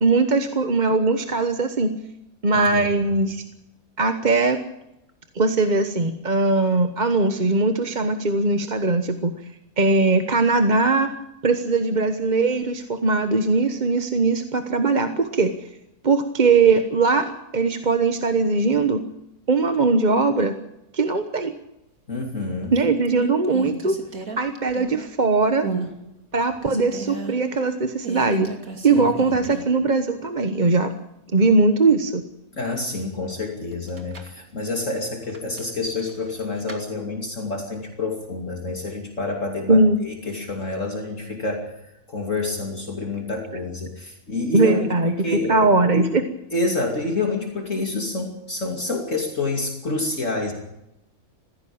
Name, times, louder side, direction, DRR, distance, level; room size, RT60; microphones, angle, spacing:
voice 1, 0.0-1.9 2.4-3.4 4.0-4.6 5.3-9.3 9.8-11.1 11.4-15.5 16.0-19.0 19.5-20.5 20.9-21.5 22.7-24.0 24.4-25.7 26.3-28.5 28.8-30.9 31.3-32.2 39.7-40.0 44.5-46.2, right 3 dB, 30° right, 7 dB, 1.1 m, -20 dB
voice 2, 2.5-3.1 22.1-22.7 28.9-29.1 32.5-41.7 42.1-45.7 45.9-46.1 46.5-50.5, left 2 dB, 50° left, 1 dB, 3.1 m, -28 dB
sound 1, 22.3-22.7 23.0-25.2 25.6-25.9 26.3-27.3 28.0-29.8 30.1-30.2 33.7-34.4 35.3-36.8, right 4 dB, 60° right, 3.1 m, -34 dB
19.0 x 16.0 x 8.7 m, 0.87 s
omnidirectional pair, 1.7 m